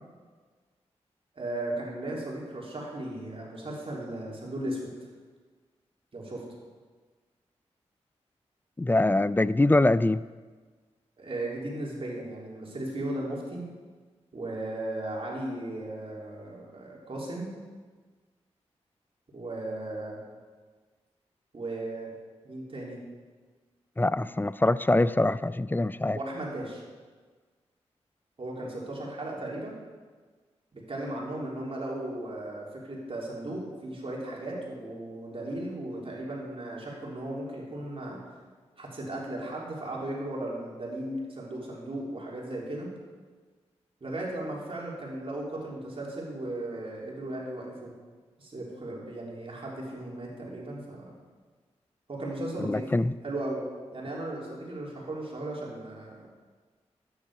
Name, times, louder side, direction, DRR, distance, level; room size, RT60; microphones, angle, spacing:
voice 1, 1.3-4.9 6.1-6.4 11.2-13.6 14.3-17.5 19.3-20.2 21.5-22.1 22.5-23.0 26.1-26.8 28.4-29.7 30.7-38.2 38.8-42.9 44.0-47.9 48.4-51.1 52.1-52.9 53.2-53.6 53.9-56.3, right 1 dB, 50° right, -3 dB, 3.5 m, -36 dB
voice 2, 8.8-10.2 24.0-26.2 52.6-53.1, left 2 dB, 15° left, 17 dB, 0.4 m, -24 dB
12.5 x 9.4 x 5.0 m, 1.4 s
cardioid pair, 45°, 12 cm